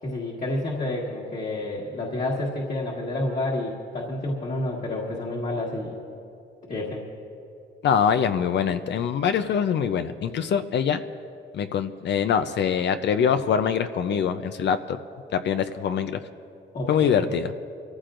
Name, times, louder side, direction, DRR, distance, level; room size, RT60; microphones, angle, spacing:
voice 1, 0.0-6.0 6.7-7.0 16.7-17.2, left 1 dB, 40° left, -4 dB, 1.7 m, -29 dB
voice 2, 7.8-11.0 11.5-15.0 15.3-16.2 16.9-17.5, left 7 dB, 60° left, 9 dB, 0.6 m, -24 dB
25.5 x 14.5 x 2.6 m, 2.7 s
cardioid pair, 90°, 20 cm